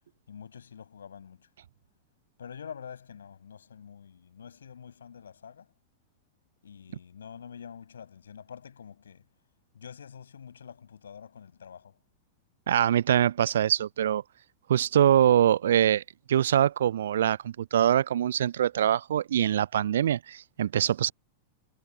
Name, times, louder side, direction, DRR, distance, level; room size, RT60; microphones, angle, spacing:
voice 1, 0.3-1.5 2.4-5.7 6.6-9.3 9.7-12.0, left 7 dB, 70° left, 6.2 m, -46 dB
voice 2, 12.7-14.2 14.7-16.0 16.3-21.1, right 10 dB, 60° right, 0.7 m, -23 dB
figure-of-eight pair, 90°, 0 cm